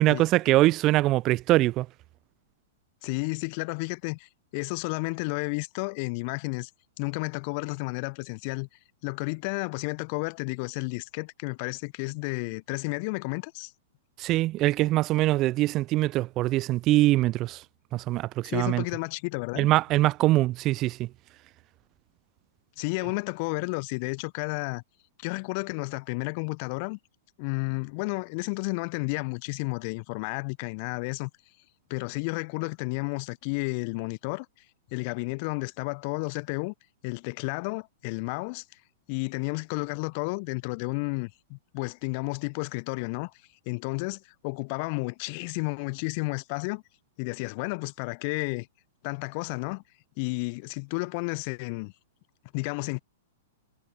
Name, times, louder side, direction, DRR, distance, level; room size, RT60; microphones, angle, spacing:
voice 1, 0.0-1.9 14.2-17.6 17.9-18.8 19.6-21.1, right 17 dB, 35° right, 0.4 m, -23 dB
voice 2, 3.0-6.7 7.0-8.7 9.0-13.7 18.4-19.7 22.8-24.8 25.2-27.0 27.4-31.3 31.9-34.5 34.9-36.7 37.0-38.6 39.1-43.3 43.7-46.8 47.2-48.7 49.0-49.8 50.2-51.9 52.5-53.0, left 32 dB, 40° left, 0.8 m, -32 dB
figure-of-eight pair, 105°, 0 cm